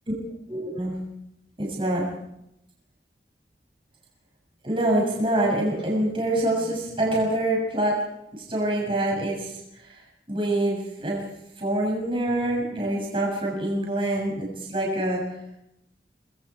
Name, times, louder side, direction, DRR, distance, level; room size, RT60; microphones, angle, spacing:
voice 1, 0.5-0.9 1.6-2.0 4.6-8.0 8.5-9.5 10.3-11.2 11.6-15.2, right 1 dB, 30° right, -2 dB, 6.7 m, -25 dB
25.0 x 21.5 x 4.8 m, 0.82 s
head